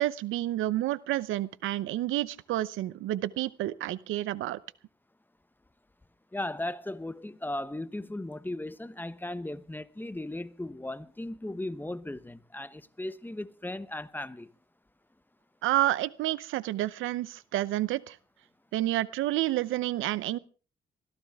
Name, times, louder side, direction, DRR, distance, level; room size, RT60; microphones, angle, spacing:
voice 1, 0.0-4.6 15.6-18.2 18.7-20.4, right 15 dB, 90° right, 0.8 m, -29 dB
voice 2, 6.3-14.5, left 1 dB, 10° left, 1.0 m, -37 dB
22.0 x 15.0 x 3.6 m
cardioid pair, 90°, 20 cm